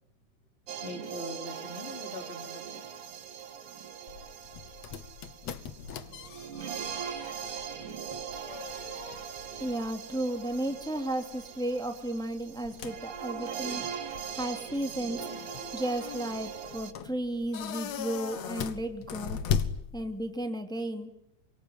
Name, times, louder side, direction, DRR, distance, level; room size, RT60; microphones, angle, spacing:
sound 1, 0.7-16.9, right 8 dB, 90° right, 3.2 m, -41 dB
voice 1, 0.8-2.8, left 2 dB, 20° left, 5 dB, 3.7 m, -42 dB
sound 2, 4.1-20.5, left 7 dB, 65° left, 2.5 m, -39 dB
voice 2, 9.6-13.8 14.3-15.2 15.7-19.4 19.9-21.1, right 1 dB, ahead, 5 dB, 2.3 m, -33 dB
26.5 x 23.5 x 9.5 m, 0.76 s
omnidirectional pair, 3.4 m